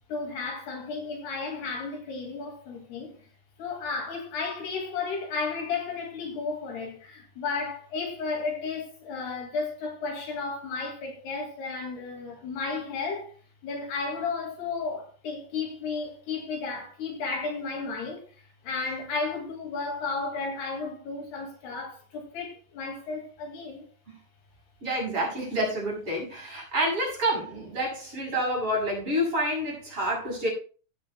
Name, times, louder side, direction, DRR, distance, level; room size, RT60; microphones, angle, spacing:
voice 1, 0.1-3.2 3.6-13.3 13.6-18.2 18.6-23.9, left 4 dB, 65° left, 4.0 m, -33 dB
voice 2, 24.8-30.5, equal, 30° right, 7.7 m, -28 dB
17.0 x 11.5 x 2.3 m
omnidirectional pair, 5.1 m